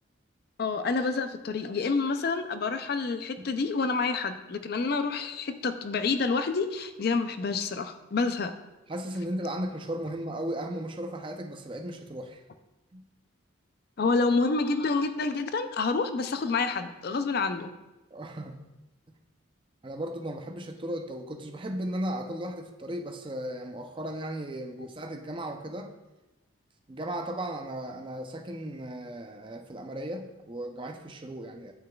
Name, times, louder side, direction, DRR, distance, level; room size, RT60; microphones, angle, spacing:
voice 1, 0.6-8.5 14.0-17.7, left 4 dB, 50° left, 9 dB, 0.4 m, -28 dB
voice 2, 8.9-12.4 12.9-13.1 18.1-18.6 19.8-25.9 26.9-31.7, right 1 dB, 25° right, 4 dB, 0.5 m, -36 dB
8.7 x 6.3 x 2.3 m, 1.0 s
head